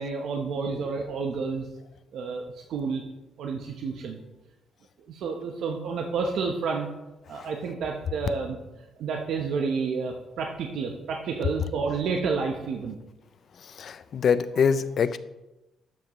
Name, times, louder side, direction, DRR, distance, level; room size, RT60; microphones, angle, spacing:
voice 1, 0.0-1.7 2.1-2.4 2.7-3.0 3.4-4.2 5.1-6.9 7.3-8.6 9.0-13.0, right 5 dB, 70° right, 3 dB, 0.9 m, -30 dB
voice 2, 13.6-15.2, left 6 dB, 50° left, 14 dB, 0.4 m, -25 dB
12.0 x 7.3 x 3.1 m, 1.0 s
cardioid pair, 135°, 0 cm